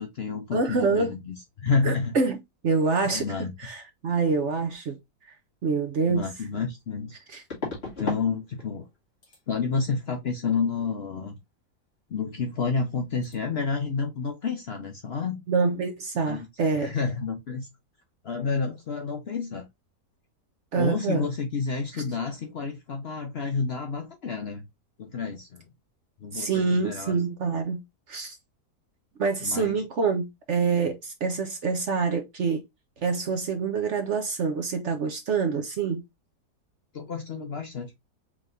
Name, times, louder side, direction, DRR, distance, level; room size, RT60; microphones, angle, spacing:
voice 1, 0.0-2.1 3.1-3.5 6.1-7.1 8.0-8.8 9.5-11.4 12.1-15.4 16.3-16.5 16.7-17.7 18.2-19.7 20.7-24.7 25.0-25.6 26.2-27.2 29.4-29.8 36.9-38.0, left 5 dB, 55° left, 0.7 m, -30 dB
voice 2, 0.5-1.1 1.8-2.4 2.6-5.0 5.6-6.2 7.3-7.4 15.5-16.9 20.7-21.3 21.9-22.0 26.3-27.8 28.1-28.4 29.2-32.6 33.0-36.0, right 4 dB, 55° right, 0.9 m, -26 dB
sound 1, 6.0-6.1 7.5-8.3 8.6-9.0 9.2-9.4 12.3-12.5 12.7-13.0 13.2-13.4, left 4 dB, 40° left, 2.3 m, -35 dB
4.8 x 3.3 x 2.5 m
omnidirectional pair, 1.8 m